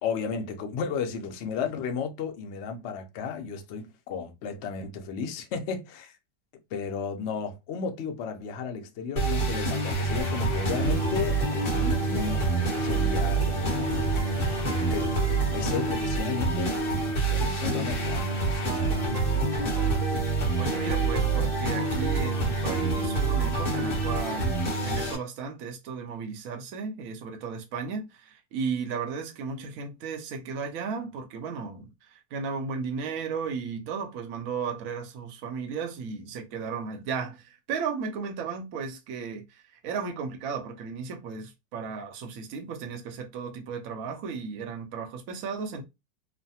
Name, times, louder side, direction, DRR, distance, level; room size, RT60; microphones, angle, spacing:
voice 1, 0.0-6.1 6.7-12.4 12.8-14.1 14.9-15.1 15.5-16.8 17.3-19.0 19.2-20.1, left 6 dB, 75° left, 0.6 m, -34 dB
sound 1, 9.2-25.2, right 3 dB, 40° left, 1.0 m, -27 dB
sound 2, 10.2-16.7, left 1 dB, 30° right, 0.7 m, -38 dB
sound 3, 18.5-24.3, right 9 dB, 90° right, 1.3 m, -41 dB
voice 2, 20.6-45.8, right 5 dB, 65° right, 0.9 m, -35 dB
3.1 x 2.1 x 2.7 m
omnidirectional pair, 1.9 m